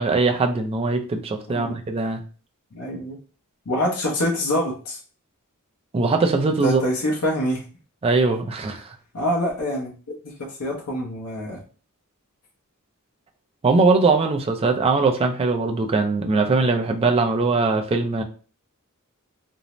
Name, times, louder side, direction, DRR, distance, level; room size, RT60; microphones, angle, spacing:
voice 1, 0.0-2.2 5.9-6.8 8.0-8.9 13.6-18.2, right 3 dB, 25° right, 4 dB, 0.3 m, -21 dB
voice 2, 2.7-3.2 3.7-5.0 6.6-7.6 9.1-9.9 10.2-11.6, equal, 70° left, -3 dB, 0.7 m, -25 dB
2.6 x 2.0 x 3.0 m, 0.38 s
head